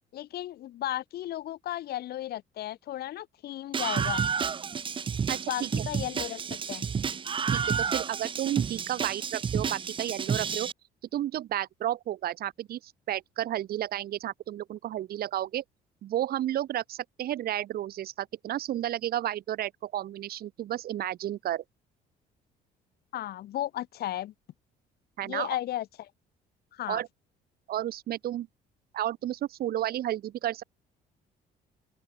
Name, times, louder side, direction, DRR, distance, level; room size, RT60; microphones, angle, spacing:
voice 1, 0.1-4.2 5.5-6.8 23.1-24.3 25.2-26.1 26.7-27.0, left 13 dB, 70° left, 4.3 m, -35 dB
Screaming, 3.7-10.7, right 6 dB, 30° right, 0.8 m, -30 dB
voice 2, 5.3-5.8 7.5-10.7 11.1-15.6 16.0-21.6 25.2-25.5 26.9-27.1 27.7-28.5 28.9-30.6, right 12 dB, 65° right, 3.2 m, -32 dB
open air
cardioid pair, 110°, 17 cm